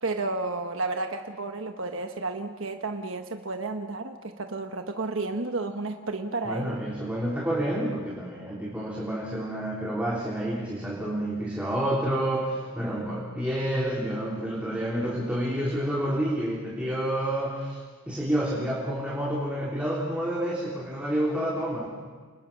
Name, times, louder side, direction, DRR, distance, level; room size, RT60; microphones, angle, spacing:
voice 1, 0.0-6.8, right 3 dB, 65° right, 6 dB, 1.2 m, -32 dB
voice 2, 6.4-17.8 18.1-21.9, right 1 dB, 5° right, -5 dB, 3.4 m, -29 dB
29.0 x 21.0 x 6.2 m, 1.5 s
head